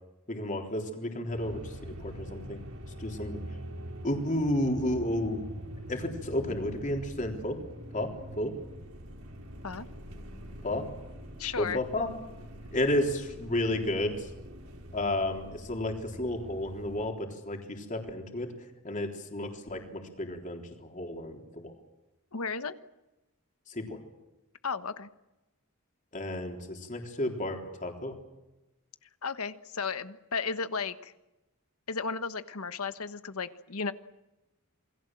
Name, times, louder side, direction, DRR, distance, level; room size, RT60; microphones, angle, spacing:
voice 1, 0.3-2.6 3.0-3.4 4.0-5.4 5.9-7.6 7.9-8.1 8.4-8.5 10.6-10.8 11.6-12.1 12.7-14.3 14.9-18.5 18.8-21.7 23.7-24.0 26.1-28.2, left 1 dB, 35° left, 3 dB, 3.8 m, -32 dB
sound 1, 1.3-17.1, equal, 80° right, 4.9 m, -44 dB
voice 2, 11.4-11.8 22.3-22.8 24.6-25.1 29.2-31.1 31.9-33.9, left 5 dB, 90° left, 12 dB, 1.2 m, -34 dB
28.0 x 21.5 x 7.7 m, 1.0 s
head